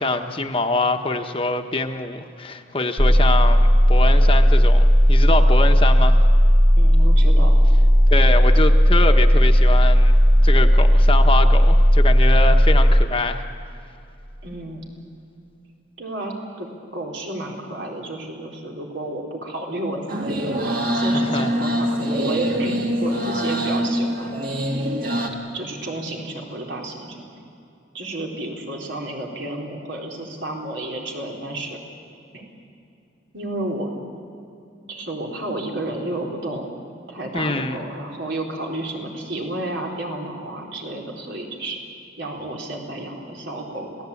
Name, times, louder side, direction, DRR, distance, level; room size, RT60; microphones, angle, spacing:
voice 1, 0.0-6.2 8.1-10.1 10.4-13.4 21.0-21.5 37.3-37.8, left 3 dB, 30° left, 5 dB, 1.1 m, -24 dB
sound 1, 3.0-13.0, equal, 5° right, 1.5 m, -14 dB
voice 2, 6.8-7.6 14.4-14.9 16.0-20.0 20.3-20.4 20.6-24.3 25.5-27.4 27.9-31.8 32.3-32.5 33.3-33.9 34.9-36.7 37.1-41.8 42.2-44.0, right 1 dB, 75° right, -1 dB, 4.1 m, -31 dB
sound 2, 20.1-25.3, equal, 50° right, 2.3 m, -24 dB
27.0 x 17.0 x 8.5 m, 2.6 s
head